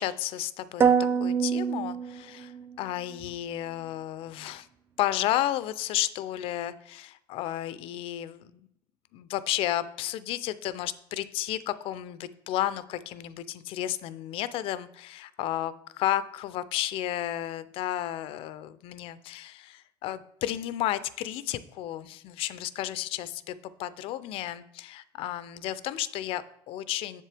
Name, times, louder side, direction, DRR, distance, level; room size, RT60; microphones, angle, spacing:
voice 1, 0.0-4.7 5.0-8.6 9.1-27.2, left 13 dB, 50° left, 15 dB, 0.4 m, -32 dB
sound 1, 0.8-2.8, right 7 dB, 20° right, 0.3 m, -25 dB
7.5 x 7.4 x 3.3 m, 0.78 s
cardioid pair, 150°, 12 cm